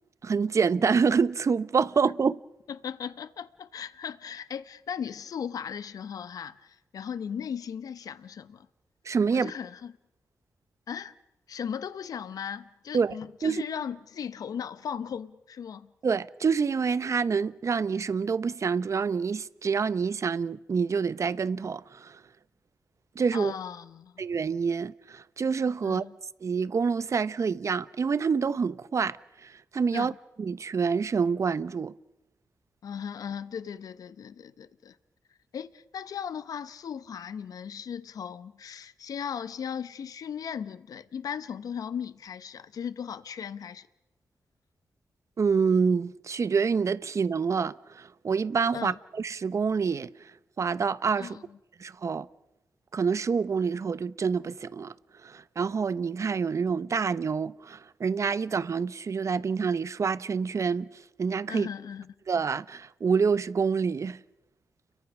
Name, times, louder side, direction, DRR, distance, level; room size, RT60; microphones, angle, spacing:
voice 1, 0.2-2.4 9.0-9.5 12.9-13.1 13.4-13.6 16.0-22.2 23.1-23.5 24.2-26.0 26.4-30.1 30.4-32.0 45.4-50.3 50.6-51.4 51.8-52.3 52.9-54.9 55.2-61.7 62.3-64.2, right 5 dB, 55° right, 0.8 m, -27 dB
voice 2, 2.7-8.7 9.3-9.9 10.9-11.1 11.5-15.9 23.3-24.1 25.8-26.1 29.9-30.2 32.8-35.0 35.5-43.9 48.7-49.0 51.2-51.4 61.5-62.1, left 7 dB, 75° left, 0.8 m, -37 dB
29.5 x 23.0 x 6.1 m
cardioid pair, 60°, 6 cm